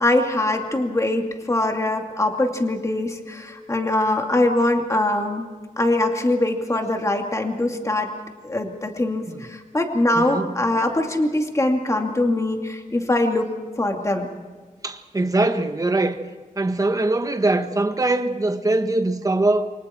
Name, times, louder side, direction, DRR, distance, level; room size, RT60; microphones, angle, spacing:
voice 1, 0.0-5.5 5.8-8.1 8.4-13.5 13.8-14.3, left 1 dB, 20° left, 2.5 m, -22 dB
voice 2, 10.1-10.5 14.8-16.2 16.6-19.7, right 2 dB, 25° right, 1.5 m, -22 dB
28.5 x 24.5 x 4.5 m
wide cardioid pair, 135°, 14 cm